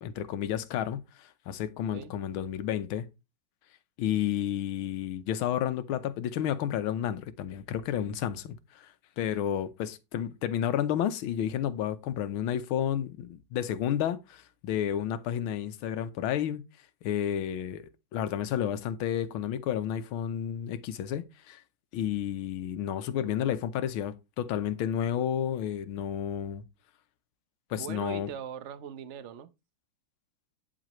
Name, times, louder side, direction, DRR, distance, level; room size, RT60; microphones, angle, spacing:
voice 1, 0.0-3.1 4.0-16.6 17.0-21.6 21.9-26.6 27.7-28.3, left 10 dB, 90° left, 1.6 m, -31 dB
voice 2, 27.7-29.5, right 8 dB, 60° right, 0.7 m, -41 dB
9.6 x 7.6 x 3.0 m
omnidirectional pair, 2.2 m